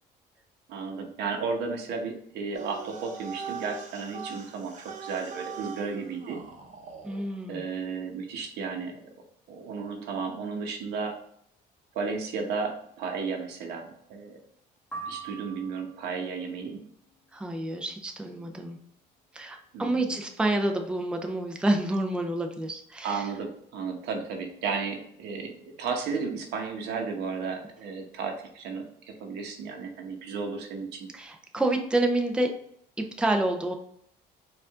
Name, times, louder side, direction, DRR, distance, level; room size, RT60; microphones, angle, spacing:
voice 1, 0.7-6.4 7.5-9.0 9.5-11.2 11.9-14.4 15.1-16.8 19.7-20.1 23.0-28.9 29.2-31.1, right 5 dB, 80° right, 3 dB, 0.9 m, -33 dB
sound 1, 2.5-7.2, right 6 dB, 45° right, 0.8 m, -41 dB
voice 2, 7.0-7.6 17.3-18.8 19.3-23.2 31.1-32.5 33.2-33.8, right 1 dB, 5° right, 4 dB, 0.5 m, -28 dB
sound 2, 14.9-16.2, right 4 dB, 10° left, 1.3 m, -40 dB
4.6 x 2.5 x 3.6 m, 0.69 s
cardioid pair, 110°, 17 cm